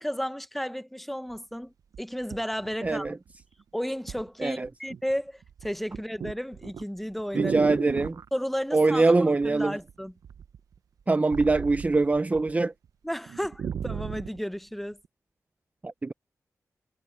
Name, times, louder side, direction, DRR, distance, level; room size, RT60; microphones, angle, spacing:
voice 1, 0.0-3.1 3.7-7.5 8.3-10.1 13.0-15.0, equal, 5° left, 1.0 m, -33 dB
sound 1, 1.3-1.4 1.9-3.4 4.1-4.3 4.6-5.1 5.4-8.3 9.4-9.9 10.2-12.5 12.8-12.9 13.3-14.4 15.0-15.1, right 7 dB, 80° right, 0.7 m, -36 dB
voice 2, 2.8-3.2 4.4-4.7 7.3-8.2 8.7-9.8 11.1-12.7 15.8-16.1, right 3 dB, 25° right, 0.6 m, -23 dB
wide cardioid pair, 95°, 6 cm